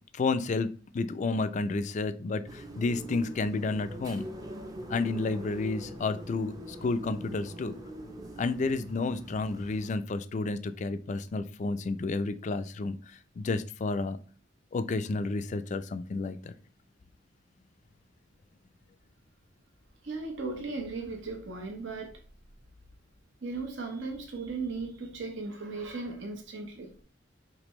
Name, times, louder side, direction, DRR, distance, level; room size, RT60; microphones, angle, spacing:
voice 1, 0.1-4.3 4.9-6.5 6.8-7.8 8.4-13.0 13.4-14.2 14.7-16.5, left 3 dB, 40° left, 12 dB, 0.3 m, -31 dB
sound 1, 2.4-9.9, right 1 dB, 20° right, 0.6 m, -43 dB
voice 2, 20.0-22.2 23.4-27.0, right 3 dB, 75° right, 1 dB, 1.1 m, -37 dB
5.2 x 3.2 x 3.1 m, 0.40 s
head